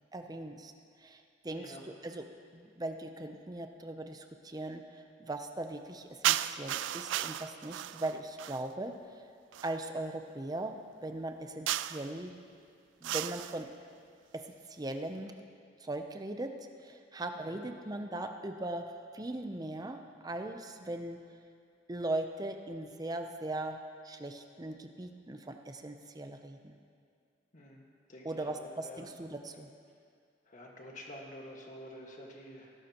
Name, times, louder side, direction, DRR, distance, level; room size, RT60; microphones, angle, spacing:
voice 1, 0.1-0.7 1.0-2.2 2.5-4.8 5.2-8.9 9.6-10.7 11.0-12.3 13.0-13.7 14.3-14.4 14.7-15.3 15.8-16.5 16.8-18.8 19.1-20.0 20.2-21.2 21.9-23.8 24.0-26.8 28.2-29.7, right 2 dB, 20° right, 5 dB, 0.6 m, -39 dB
sound 1, 6.2-8.7 9.5-9.8 11.7-12.1 13.0-13.6, right 12 dB, 75° right, 0.3 m, -34 dB
voice 2, 27.5-29.1 30.5-32.7, left 1 dB, 40° left, -1 dB, 1.7 m, -49 dB
19.5 x 11.5 x 3.0 m, 2.3 s
head